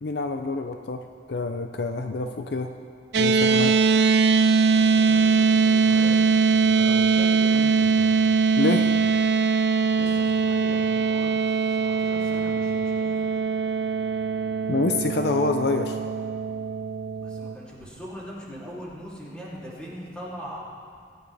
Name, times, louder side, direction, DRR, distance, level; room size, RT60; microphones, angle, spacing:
voice 1, 0.0-1.0 1.3-2.7 3.2-3.7 8.6-8.9 14.7-16.0, left 3 dB, 60° left, 6 dB, 0.6 m, -26 dB
sound 1, 3.1-17.5, right 5 dB, 65° right, 0.5 m, -21 dB
voice 2, 4.7-8.2 9.9-13.7 17.2-20.6, equal, 5° left, -7 dB, 3.0 m, -41 dB
23.5 x 9.3 x 3.5 m, 2.1 s
head